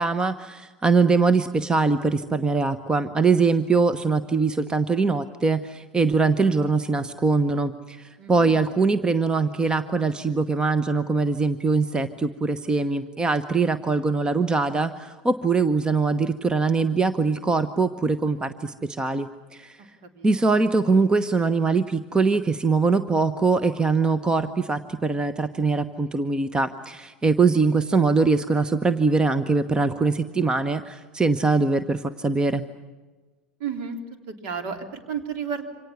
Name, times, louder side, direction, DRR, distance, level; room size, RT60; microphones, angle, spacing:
voice 1, 0.0-19.8 20.2-32.6, right 4 dB, 15° right, 12 dB, 1.0 m, -22 dB
voice 2, 8.2-8.5 20.1-20.4 33.6-34.0 34.3-35.6, right 6 dB, 55° right, 6 dB, 3.4 m, -32 dB
28.0 x 26.0 x 7.2 m, 1.3 s
figure-of-eight pair, 75°, 5 cm